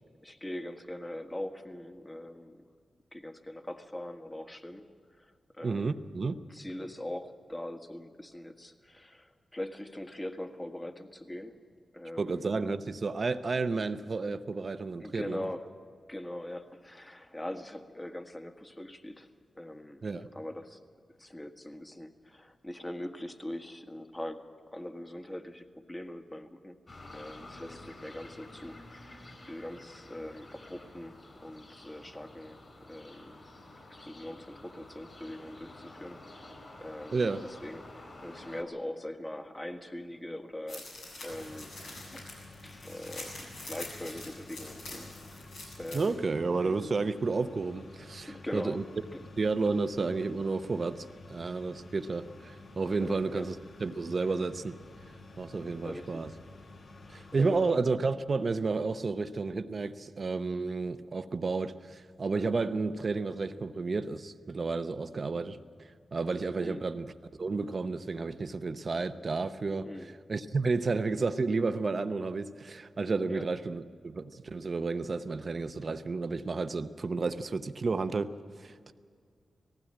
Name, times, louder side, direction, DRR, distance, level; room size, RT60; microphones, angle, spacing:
voice 1, 0.2-2.6 3.1-4.8 5.2-6.0 6.5-11.5 11.9-12.5 15.0-15.7 16.1-19.3 19.5-20.0 20.3-20.8 21.2-24.4 24.7-26.8 27.1-31.2 31.4-32.6 32.9-33.4 33.9-36.2 36.5-36.6 36.8-37.3 37.6-40.9 41.2-41.7 42.1-42.3 42.6-43.4 43.6-45.4 45.8-46.3 48.3-48.8 49.1-49.2 53.0-53.5 55.8-56.3 57.0-57.7 66.6-66.8 69.8-70.1 73.3-73.4, left 1 dB, 20° left, 6 dB, 1.6 m, -42 dB
voice 2, 5.6-6.4 12.2-15.4 20.0-20.3 37.1-37.4 45.9-48.8 49.4-53.5 53.8-54.8 55.4-56.3 57.1-65.6 66.1-67.1 67.4-69.9 70.3-78.3 78.6-78.9, right 4 dB, 55° right, 10 dB, 0.8 m, -31 dB
sound 1, 26.9-38.6, left 2 dB, 45° left, 4.5 m, -50 dB
sound 2, 40.7-46.1, left 2 dB, 90° left, 7.7 m, -45 dB
sound 3, 41.3-57.7, left 2 dB, 65° left, 1.4 m, -51 dB
18.5 x 15.5 x 8.9 m, 2.1 s
cardioid pair, 50°, 0 cm